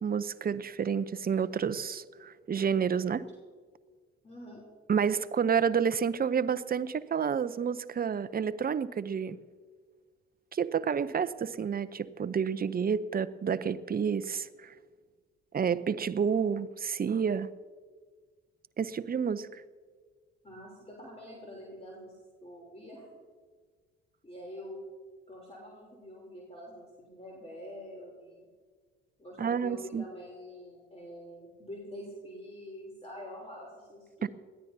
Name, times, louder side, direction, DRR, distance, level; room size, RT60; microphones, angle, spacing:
voice 1, 0.0-3.2 4.9-9.4 10.5-14.7 15.5-17.5 18.8-19.6 29.4-30.0 34.2-34.3, right 7 dB, 30° right, 15 dB, 0.7 m, -29 dB
voice 2, 4.2-4.6 20.4-23.1 24.2-24.8 25.3-28.5 29.2-34.3, equal, 20° left, -2 dB, 3.4 m, -46 dB
20.5 x 14.5 x 2.8 m, 1.5 s
hypercardioid pair, 45°, 29 cm